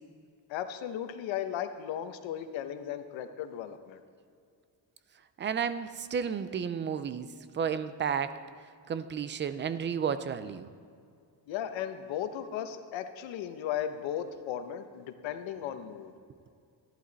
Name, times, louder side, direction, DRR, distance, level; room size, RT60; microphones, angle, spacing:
voice 1, 0.5-4.0 11.5-16.1, left 10 dB, 85° left, 9 dB, 1.0 m, -36 dB
voice 2, 5.4-7.3 7.5-8.4 8.9-10.7, right 7 dB, 25° right, 13 dB, 0.4 m, -32 dB
13.5 x 11.5 x 4.0 m, 2.3 s
cardioid pair, 155°, 44 cm